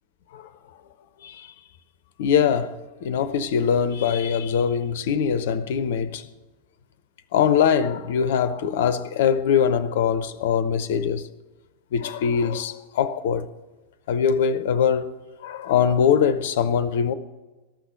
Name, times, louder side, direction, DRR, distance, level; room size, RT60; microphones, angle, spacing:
voice 1, 2.2-6.3 7.3-11.3 11.9-13.5 14.1-17.1, left 7 dB, 55° left, 0.6 m, -22 dB
13.5 x 6.1 x 9.2 m
figure-of-eight pair, 90°, 0 cm